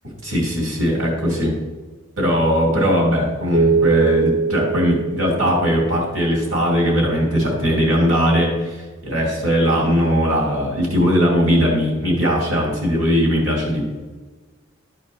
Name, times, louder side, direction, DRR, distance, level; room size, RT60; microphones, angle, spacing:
voice 1, 0.0-1.5 2.2-13.9, equal, 70° right, -1 dB, 3.0 m, -19 dB
sound 1, 3.5-6.1, right 4 dB, 85° right, 1.9 m, -21 dB
13.0 x 4.4 x 4.2 m, 1.3 s
head